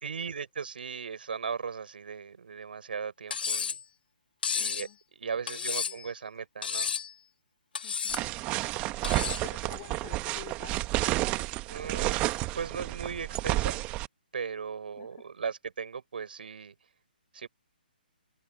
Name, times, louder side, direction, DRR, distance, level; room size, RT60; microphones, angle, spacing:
voice 1, 0.0-3.8 4.5-4.9 5.2-6.9 11.7-12.3 12.5-13.8 14.3-16.7 17.3-17.5, right 6 dB, 75° right, 6.3 m, -37 dB
Cutlery silverware, 3.3-3.8 4.4-4.9 5.5-6.1 6.6-7.1 7.7-8.2 9.0-9.5, left 6 dB, 70° left, 1.0 m, -32 dB
voice 2, 4.6-5.0 5.5-6.4 7.8-8.2 9.4-10.8 15.0-15.3, left 23 dB, 30° left, 2.8 m, -49 dB
sound 1, 8.1-14.1, right 19 dB, 25° right, 1.2 m, -31 dB
hypercardioid pair, 150°, 5 cm